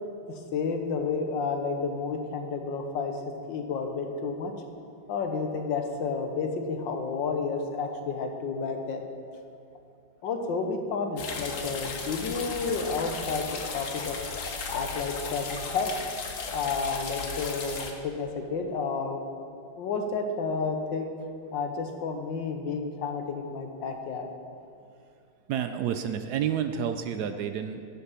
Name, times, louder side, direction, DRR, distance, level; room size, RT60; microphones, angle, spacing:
voice 1, 0.3-3.2 3.5-4.5 5.1-9.0 10.2-14.2 14.7-15.9 16.5-19.2 19.8-21.1 21.5-24.3, left 4 dB, 80° left, 5 dB, 1.7 m, -31 dB
sound 1, 11.2-17.9, left 4 dB, 50° left, 1.2 m, -36 dB
voice 2, 25.5-27.9, right 8 dB, 70° right, 8 dB, 1.0 m, -30 dB
11.0 x 8.2 x 5.8 m, 2.6 s
omnidirectional pair, 2.0 m